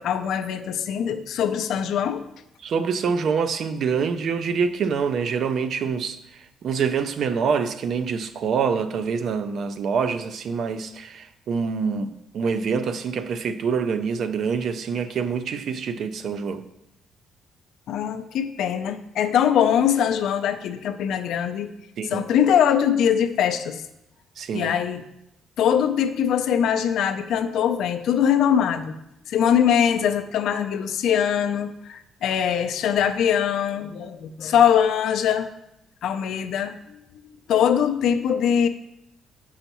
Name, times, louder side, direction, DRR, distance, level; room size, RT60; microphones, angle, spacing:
voice 1, 0.0-2.2 17.9-21.7 22.1-23.8 24.5-25.0 25.6-29.0 29.3-35.5 36.0-36.7 37.5-38.7, left 8 dB, 75° left, 0.4 m, -22 dB
voice 2, 2.6-16.6 22.0-22.2 24.4-24.7, right 6 dB, 55° right, 0.4 m, -26 dB
6.8 x 5.6 x 2.9 m
cardioid pair, 135°, 0 cm